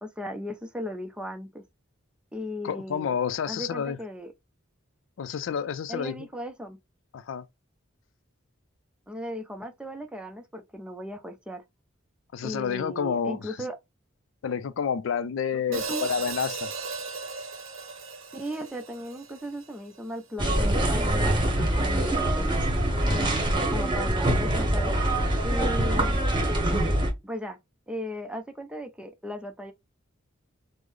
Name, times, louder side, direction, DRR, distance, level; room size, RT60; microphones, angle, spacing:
voice 1, 0.0-1.6 2.3-3.1 3.5-4.3 5.9-6.8 9.1-11.6 12.4-13.8 15.5-16.1 18.3-22.5 23.1-25.0 25.4-26.2 27.2-27.6 27.9-29.7, equal, 5° right, 0.4 m, -37 dB
voice 2, 2.6-4.0 5.2-6.2 7.1-7.4 12.3-13.6 14.4-16.7, left 7 dB, 70° left, 0.4 m, -29 dB
Hi-hat, 15.7-20.0, right 4 dB, 90° right, 0.7 m, -36 dB
sound 1, 20.4-27.1, right 1 dB, 25° right, 0.9 m, -24 dB
3.7 x 2.0 x 3.1 m
head